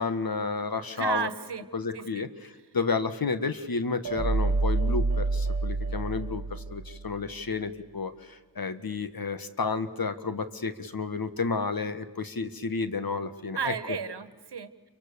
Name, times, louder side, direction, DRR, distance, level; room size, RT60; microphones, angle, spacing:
voice 1, 0.0-1.3 1.7-2.3 2.7-13.7, left 4 dB, 55° left, 10 dB, 1.7 m, -31 dB
voice 2, 0.9-1.6 1.9-2.3 13.5-14.7, right 6 dB, 70° right, 12 dB, 1.5 m, -33 dB
sound 1, 4.0-7.2, right 3 dB, 40° right, 2.1 m, -28 dB
29.5 x 24.5 x 7.0 m, 1.3 s
cardioid pair, 50°, 42 cm